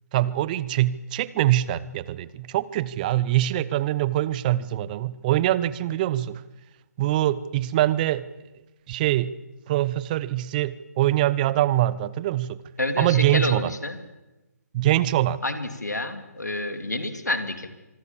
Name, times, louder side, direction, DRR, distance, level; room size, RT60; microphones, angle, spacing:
voice 1, 0.1-6.4 7.0-8.2 8.9-9.3 9.7-12.6 13.0-13.7 14.7-15.4, right 14 dB, 30° right, 19 dB, 0.8 m, -23 dB
voice 2, 12.8-14.0 15.4-17.7, left 2 dB, 90° left, 8 dB, 3.0 m, -28 dB
26.0 x 22.0 x 7.2 m, 1.1 s
figure-of-eight pair, 140°, 9 cm